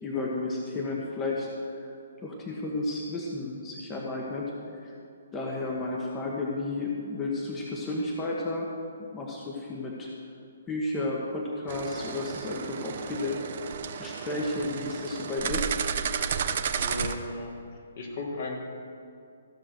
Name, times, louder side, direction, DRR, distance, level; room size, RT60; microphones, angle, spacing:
voice 1, 0.0-1.5 1.9-4.5 4.8-4.9 5.3-8.7 9.1-10.1 10.7-13.6 14.0-15.7, left 2 dB, 20° left, -2 dB, 1.3 m, -32 dB
sound 1, 11.7-17.1, right 7 dB, 55° right, 0.8 m, -32 dB
voice 2, 16.8-17.5 18.0-18.6, left 2 dB, 55° left, 0 dB, 2.2 m, -35 dB
15.0 x 6.2 x 6.5 m, 2.6 s
hypercardioid pair, 135°, 0 cm